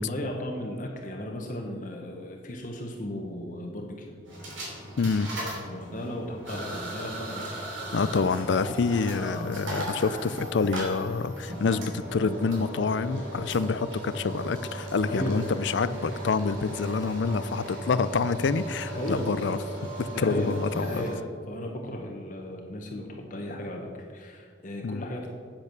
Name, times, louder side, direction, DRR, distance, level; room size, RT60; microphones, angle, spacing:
voice 1, 0.0-4.2 5.6-7.7 15.1-15.4 18.9-19.3 20.1-25.3, left 1 dB, 40° left, 1 dB, 1.0 m, -35 dB
sound 1, 4.3-21.2, right 1 dB, 85° right, 3.1 m, -37 dB
voice 2, 5.0-5.3 7.9-19.6 20.0-21.1 24.8-25.0, left 4 dB, 70° left, 15 dB, 0.4 m, -27 dB
8.6 x 8.1 x 6.0 m, 2.1 s
head